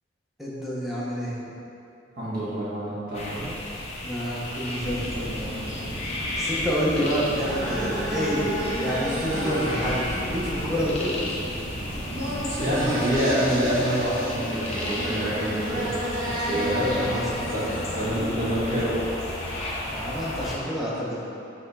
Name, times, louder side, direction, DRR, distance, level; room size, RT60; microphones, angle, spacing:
voice 1, 0.4-1.4 4.0-5.9 6.4-8.5 8.8-11.2 16.6-17.8 19.9-21.2, equal, ahead, -8 dB, 0.9 m, -29 dB
voice 2, 2.1-3.5 12.6-15.9 16.4-17.1 17.5-17.6 17.9-19.0, equal, 45° right, -9 dB, 1.4 m, -27 dB
sound 1, 3.1-20.6, left 1 dB, 35° left, 0.8 m, -34 dB
sound 2, 4.8-12.9, right 1 dB, 30° right, 0.7 m, -36 dB
sound 3, 6.9-18.8, equal, 75° right, 0.9 m, -31 dB
5.5 x 3.6 x 4.8 m, 2.8 s
head